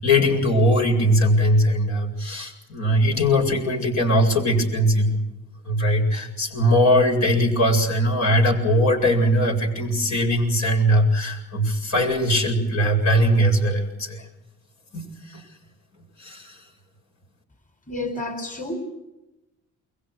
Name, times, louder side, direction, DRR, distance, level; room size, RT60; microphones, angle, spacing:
voice 1, 0.0-5.2 5.7-14.2 14.9-15.4 16.2-16.6, equal, 65° left, 3 dB, 8.0 m, -20 dB
voice 2, 17.9-18.8, left 2 dB, 25° left, 7 dB, 4.3 m, -30 dB
29.5 x 23.0 x 6.5 m, 0.96 s
cardioid pair, 90°, 30 cm